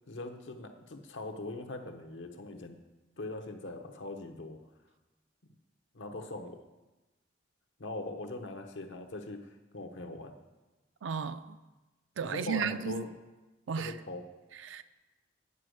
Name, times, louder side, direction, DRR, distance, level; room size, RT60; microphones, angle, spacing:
voice 1, 0.1-2.8 3.2-4.6 5.9-6.6 7.8-9.4 9.7-10.3 12.2-13.1 13.8-14.2, left 2 dB, 80° left, 5 dB, 0.9 m, -41 dB
voice 2, 11.0-11.6 12.2-13.0 13.7-13.9 14.6-14.8, right 7 dB, 85° right, 12 dB, 0.4 m, -34 dB
9.6 x 5.2 x 6.3 m, 1.1 s
head